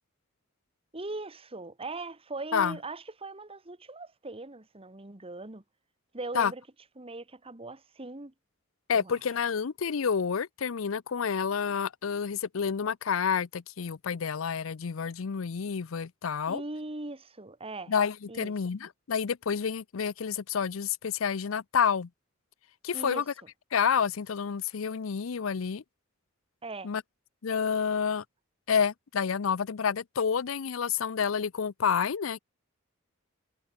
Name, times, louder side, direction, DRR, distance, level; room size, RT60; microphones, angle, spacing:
voice 1, 0.9-5.6 6.1-6.6 7.0-8.3 8.9-9.2 16.5-17.9 18.3-18.5 22.9-23.2 26.6-26.9, right 2 dB, 30° right, 1.6 m, -40 dB
voice 2, 8.9-16.6 17.9-22.1 22.8-23.2 23.7-25.8 26.8-27.0 27.4-28.2 28.7-32.4, left 6 dB, 75° left, 0.5 m, -29 dB
head